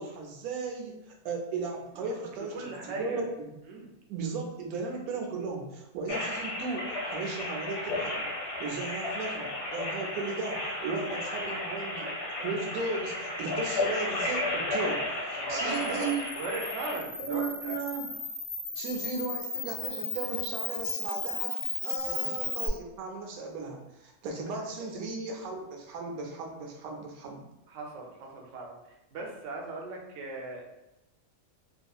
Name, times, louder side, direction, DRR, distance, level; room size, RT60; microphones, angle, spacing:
voice 1, 0.0-2.5 2.8-3.5 4.1-8.2 8.6-12.1 12.4-16.2 17.2-18.1 18.8-21.5 21.8-27.4, right 4 dB, 85° right, 0 dB, 1.1 m, -36 dB
voice 2, 2.0-3.2 3.6-3.9 10.9-11.0 13.8-13.9 15.4-17.7 22.0-22.3 27.7-30.6, right 3 dB, 65° right, 0 dB, 0.8 m, -39 dB
sound 1, 6.1-17.0, left 2 dB, 55° left, 0.7 m, -33 dB
Camera, 15.7-22.7, left 4 dB, 75° left, 0.3 m, -35 dB
2.7 x 2.4 x 2.3 m, 0.93 s
omnidirectional pair, 1.5 m